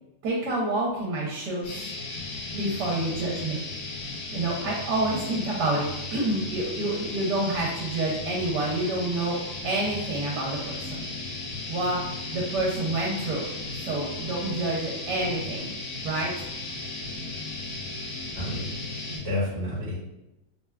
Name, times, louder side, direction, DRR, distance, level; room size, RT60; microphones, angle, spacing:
voice 1, 0.2-1.8 2.5-3.6 4.3-9.4 9.6-11.0 11.7-12.1 12.3-15.7 16.0-16.3, right 2 dB, 80° right, -4 dB, 1.2 m, -28 dB
sound 1, 1.6-19.2, left 2 dB, 65° left, 0.9 m, -36 dB
voice 2, 18.4-18.8 19.1-20.0, left 1 dB, 25° right, -9 dB, 1.1 m, -30 dB
3.3 x 2.2 x 2.2 m, 0.93 s
omnidirectional pair, 1.8 m